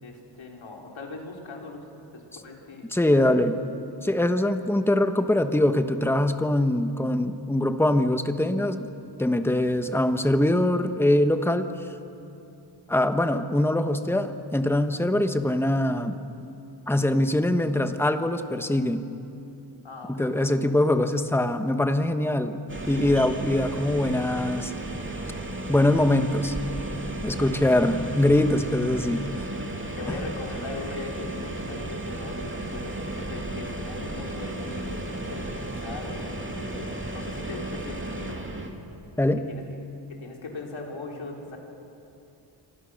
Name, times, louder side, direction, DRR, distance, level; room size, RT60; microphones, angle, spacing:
voice 1, 0.0-1.8 2.1-3.4 19.8-20.3 27.4-27.7 30.0-38.4 39.5-39.6 40.1-41.6, left 3 dB, 75° left, 0 dB, 4.2 m, -39 dB
voice 2, 2.9-3.6 4.0-8.9 9.2-11.7 12.9-16.2 16.9-19.0 20.1-22.6 22.9-24.7 25.7-26.5 27.2-29.3 39.2-39.4, left 1 dB, 5° left, 8 dB, 1.1 m, -23 dB
sound 1, 22.7-38.7, right 2 dB, 25° right, 2.3 m, -34 dB
27.0 x 25.0 x 6.5 m, 2.8 s
wide cardioid pair, 110°, 46 cm